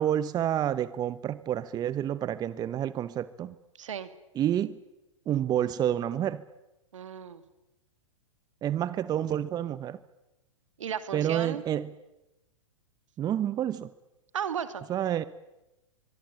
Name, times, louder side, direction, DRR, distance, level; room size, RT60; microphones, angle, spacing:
voice 1, 0.0-3.5 4.3-4.8 5.3-6.4 8.6-10.0 11.1-11.9 13.2-13.9 14.9-15.2, right 10 dB, 25° right, 16 dB, 0.9 m, -29 dB
voice 2, 3.8-4.1 6.9-7.4 10.8-11.6 14.3-14.8, right 8 dB, 70° right, 12 dB, 2.5 m, -34 dB
24.5 x 22.0 x 9.0 m, 0.97 s
hypercardioid pair, 110°, 17 cm